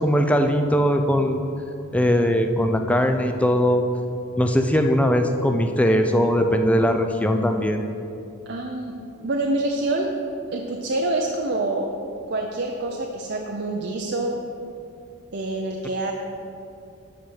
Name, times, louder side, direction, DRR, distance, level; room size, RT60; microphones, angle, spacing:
voice 1, 0.0-1.4 1.9-3.8 4.4-7.8, equal, 5° left, 5 dB, 0.5 m, -20 dB
voice 2, 8.5-9.0 9.2-10.2 10.5-11.9 12.3-14.4 15.3-16.1, right 2 dB, 50° right, 1 dB, 0.6 m, -26 dB
12.0 x 4.4 x 7.9 m, 2.6 s
head